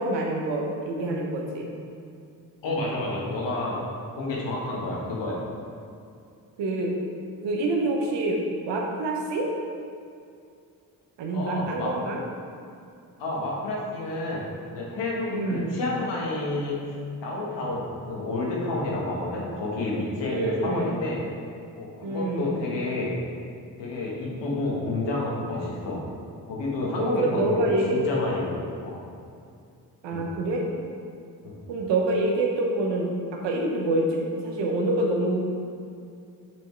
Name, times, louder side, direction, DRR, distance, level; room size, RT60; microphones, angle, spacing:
voice 1, 0.0-1.7 6.6-7.0 7.4-9.5 11.2-12.2 15.3-15.7 20.3-20.9 22.0-22.5 27.0-28.2 30.0-30.6 31.7-35.4, right 2 dB, 90° right, 0 dB, 1.1 m, -26 dB
voice 2, 2.6-3.8 4.2-5.4 11.3-11.9 13.2-14.4 14.7-16.9 17.2-21.2 21.7-23.1 23.8-26.0 26.5-27.6 27.9-28.5 28.8-29.0 30.1-30.2 31.4-31.5, left 2 dB, 85° left, -4 dB, 1.5 m, -29 dB
6.3 x 5.3 x 4.5 m, 2.4 s
supercardioid pair, 50°, 42 cm